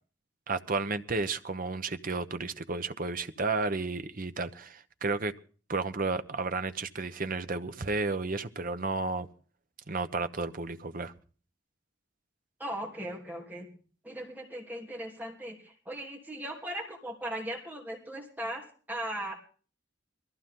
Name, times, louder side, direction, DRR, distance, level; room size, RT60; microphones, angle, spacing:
voice 1, 0.5-5.3 5.7-9.3 9.9-11.1, right 3 dB, 50° right, 1.0 m, -32 dB
voice 2, 12.6-13.7 14.0-19.3, right 1 dB, 10° right, 3.1 m, -38 dB
22.0 x 15.0 x 3.8 m
head